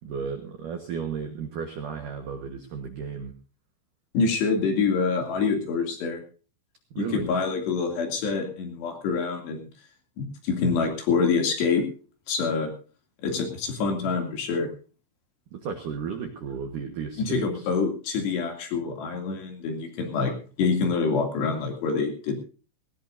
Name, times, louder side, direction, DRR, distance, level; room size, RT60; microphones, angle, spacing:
voice 1, 0.0-3.3 6.9-7.3 15.5-17.7, right 6 dB, 70° right, 6 dB, 1.9 m, -34 dB
voice 2, 4.1-6.2 7.0-9.6 10.2-11.8 12.3-12.7 13.2-14.7 17.2-22.3, left 5 dB, 60° left, 4 dB, 4.5 m, -26 dB
18.5 x 18.0 x 2.7 m, 0.36 s
omnidirectional pair, 5.9 m